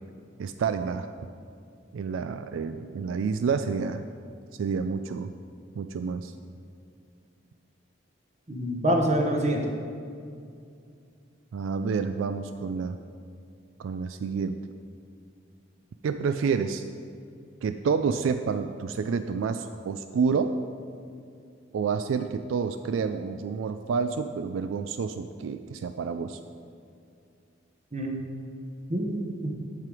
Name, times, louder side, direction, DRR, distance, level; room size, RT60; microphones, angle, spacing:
voice 1, 0.4-1.1 1.9-4.0 4.6-5.3 5.8-6.3 11.5-13.0 13.8-14.6 16.0-16.8 17.6-20.6 21.7-26.4, right 5 dB, 80° right, 9 dB, 0.3 m, -29 dB
voice 2, 8.5-9.6 27.9-28.2 28.9-29.5, right 1 dB, 35° right, 1 dB, 1.0 m, -26 dB
7.6 x 7.6 x 4.9 m, 2.4 s
head